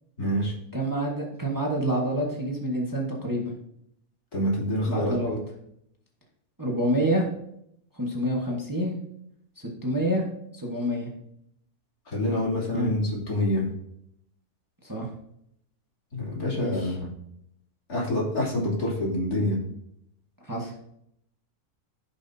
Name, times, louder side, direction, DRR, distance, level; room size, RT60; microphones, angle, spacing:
voice 1, 0.2-0.5 4.3-5.4 12.1-13.6 16.1-17.1 17.9-19.6, left 1 dB, 75° left, -6 dB, 3.7 m, -26 dB
voice 2, 0.7-3.5 4.9-5.4 6.6-7.3 7.9-9.0 9.6-10.3 10.5-11.1 12.7-12.9 14.8-15.1 16.6-17.0 20.4-20.7, right 1 dB, 15° right, -2 dB, 1.4 m, -27 dB
15.0 x 5.6 x 2.8 m, 0.75 s
omnidirectional pair, 1.6 m